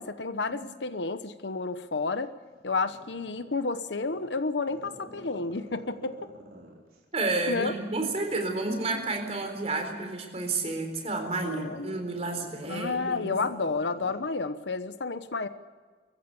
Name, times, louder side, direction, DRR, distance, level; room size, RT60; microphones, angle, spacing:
voice 1, 0.0-2.3 2.6-6.3 7.5-7.7 11.4-12.0 12.6-15.5, left 3 dB, 80° left, 11 dB, 1.0 m, -31 dB
Growling, 1.8-3.6 4.0-7.0 7.4-14.3 14.6-14.7, right 1 dB, 55° right, 4.5 m, -50 dB
voice 2, 7.1-13.4, right 3 dB, 35° right, 5 dB, 4.0 m, -31 dB
23.5 x 14.5 x 8.3 m, 1.5 s
head